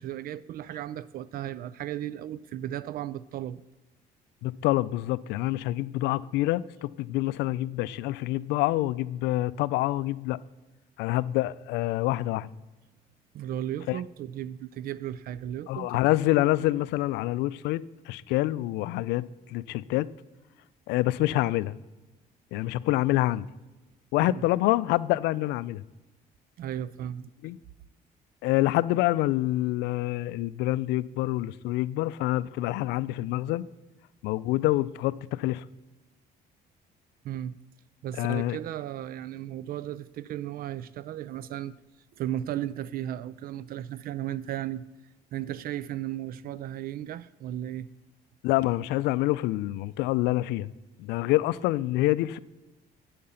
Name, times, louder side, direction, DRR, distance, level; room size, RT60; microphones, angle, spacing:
voice 1, 0.0-3.6 13.3-15.9 24.3-24.4 26.6-27.3 37.2-37.6 38.0-41.7 42.2-44.8 45.3-47.9, right 12 dB, 60° right, 0.4 m, -35 dB
voice 2, 4.4-10.4 11.0-12.5 13.9-14.0 15.7-20.1 20.9-21.8 22.5-23.5 24.1-25.8 27.4-27.6 28.4-33.6 34.2-35.6 38.2-38.6 48.4-50.7 51.0-52.4, left 17 dB, 90° left, 0.4 m, -26 dB
8.7 x 8.6 x 5.6 m
cardioid pair, 110°, 17 cm